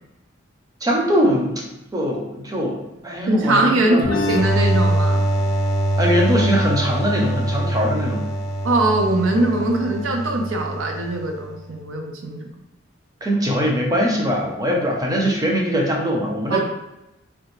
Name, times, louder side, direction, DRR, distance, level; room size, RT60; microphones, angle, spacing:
voice 1, 0.8-1.6 1.9-4.1 6.0-8.2 13.2-16.6, equal, 20° right, -1 dB, 0.6 m, -21 dB
voice 2, 3.3-5.2 8.6-12.4 16.5-16.6, right 2 dB, 90° right, 2 dB, 0.6 m, -21 dB
sound 1, 4.0-11.5, right 1 dB, 50° left, 0.4 m, -23 dB
3.4 x 2.4 x 3.1 m, 0.92 s
head